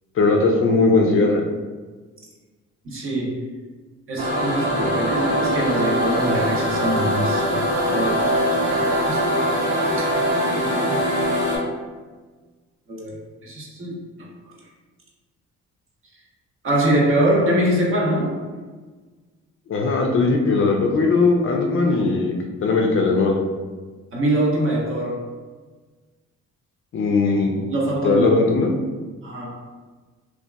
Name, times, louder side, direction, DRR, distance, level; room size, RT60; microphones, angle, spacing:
voice 1, 0.2-1.4 19.7-22.3 22.6-23.4 26.9-27.5 28.0-28.7, left 3 dB, 45° left, 1 dB, 0.4 m, -18 dB
voice 2, 2.8-3.5 4.1-8.5 9.0-9.5 10.0-10.1 10.5-11.0 12.9-14.5 16.6-18.6 24.1-25.2 27.2-28.4 29.2-29.6, right 1 dB, 45° right, -3 dB, 0.7 m, -24 dB
sound 1, 4.2-11.6, equal, 85° right, 0.9 m, -22 dB
2.8 x 2.3 x 2.2 m, 1.4 s
cardioid pair, 90°, 30 cm